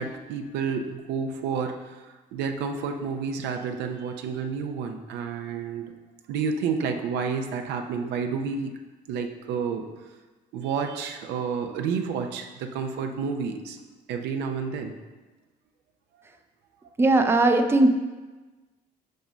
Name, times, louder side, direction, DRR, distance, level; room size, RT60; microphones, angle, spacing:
voice 1, 0.0-1.9 2.3-5.9 6.3-8.7 9.1-9.9 10.5-13.8 14.1-14.9, right 5 dB, 85° right, 5 dB, 0.8 m, -30 dB
voice 2, 17.0-17.9, right 2 dB, 15° right, 6 dB, 0.5 m, -18 dB
5.8 x 5.3 x 5.0 m, 1.2 s
cardioid pair, 110°, 17 cm